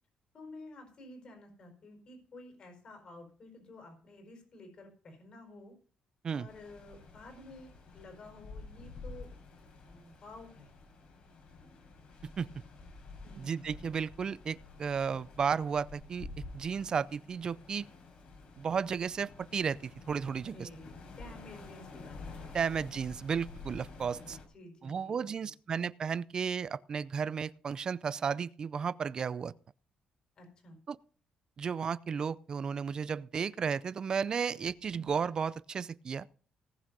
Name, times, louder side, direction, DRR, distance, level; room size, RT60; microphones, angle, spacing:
voice 1, 0.3-5.7 6.3-9.3 9.9-10.7 13.2-13.5 20.4-22.7 24.2-25.5 30.4-30.8, left 2 dB, 45° left, 4.8 m, -52 dB
sound 1, 6.5-24.5, left 3 dB, 60° left, 4.2 m, -50 dB
voice 2, 13.4-16.3 16.5-17.9 18.6-20.7 22.5-24.4 24.8-29.5 30.9-31.0 31.6-36.3, right 6 dB, 35° right, 0.5 m, -33 dB
18.5 x 6.2 x 5.4 m
cardioid pair, 140°, 2 cm